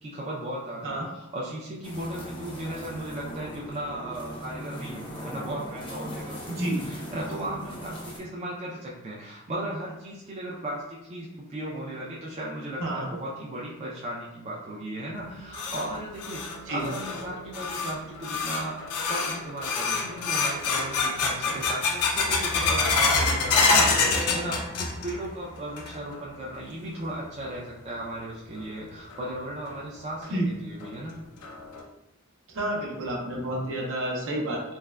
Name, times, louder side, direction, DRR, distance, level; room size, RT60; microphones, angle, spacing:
voice 1, 0.0-18.8 19.1-31.2, right 1 dB, 30° right, -5 dB, 0.4 m, -36 dB
sound 1, 1.8-8.2, equal, 20° left, 0.5 m, -39 dB
sound 2, 15.1-25.3 25.6-26.2 26.6-26.7 27.4-27.5 29.1-29.2 29.7-29.8 30.2-30.3 30.8-30.9 31.4-31.8, left 4 dB, 85° left, 0.4 m, -27 dB
voice 2, 32.5-34.6, right 1 dB, 60° right, -1 dB, 0.7 m, -29 dB
3.4 x 2.1 x 2.2 m, 0.92 s
head